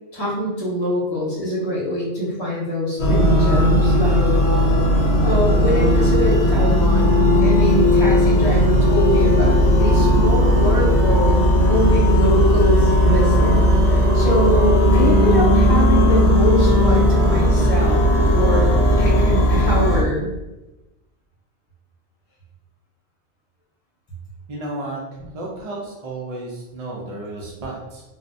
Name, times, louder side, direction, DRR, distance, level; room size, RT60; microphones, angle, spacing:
voice 1, 0.1-4.2 5.2-13.6 13.8-18.0 18.3-20.3, equal, 25° left, -7 dB, 0.8 m, -24 dB
sound 1, 3.0-20.0, equal, 75° left, 0.9 m, -16 dB
voice 2, 24.5-28.0, right 2 dB, 50° right, -3 dB, 0.4 m, -32 dB
3.4 x 2.1 x 2.6 m, 1.0 s
omnidirectional pair, 1.2 m